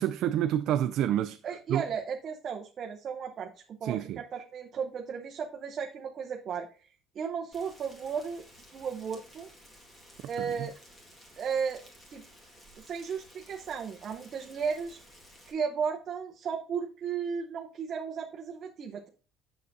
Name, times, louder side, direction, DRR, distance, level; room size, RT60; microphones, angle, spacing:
voice 1, 0.0-1.4 1.7-1.8 3.8-4.2 10.4-10.7, right 11 dB, 60° right, 0.3 m, -28 dB
voice 2, 1.4-6.9 7.1-8.4 8.7-9.5 10.3-10.7 11.4-11.8 12.1-12.2 12.8-15.0 15.5-19.1, right 6 dB, 35° right, 0.7 m, -35 dB
Rain, 7.5-15.5, equal, 15° left, 1.7 m, -55 dB
8.2 x 6.5 x 2.6 m
cardioid pair, 150°, 0 cm